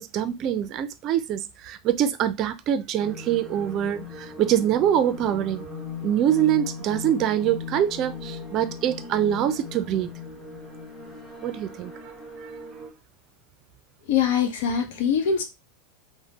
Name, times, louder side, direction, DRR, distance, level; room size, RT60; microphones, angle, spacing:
voice 1, 0.0-5.6 6.0-10.1 11.4-11.9 12.4-12.5, right 10 dB, 45° right, 0.4 m, -24 dB
sound 1, 3.0-12.9, left 4 dB, 10° left, 1.0 m, -38 dB
voice 2, 14.1-15.4, left 7 dB, 75° left, 0.8 m, -23 dB
3.2 x 2.1 x 2.8 m
hypercardioid pair, 110°, 0 cm